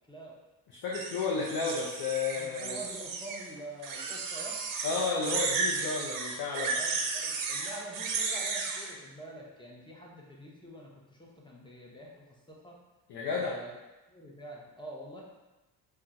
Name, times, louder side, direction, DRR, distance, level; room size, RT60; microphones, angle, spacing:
voice 1, 0.8-2.8 4.8-6.8 13.1-13.5, left 4 dB, 65° left, -5 dB, 0.7 m, -32 dB
sound 1, 0.9-3.5 3.8-8.9, right 4 dB, 55° right, 0.5 m, -34 dB
voice 2, 2.3-4.6 6.8-12.1 12.5-12.8 13.3-13.7 14.1-15.2, right 1 dB, 10° left, -3 dB, 0.7 m, -46 dB
2.3 x 2.3 x 4.0 m, 1.1 s
supercardioid pair, 80°, 40 cm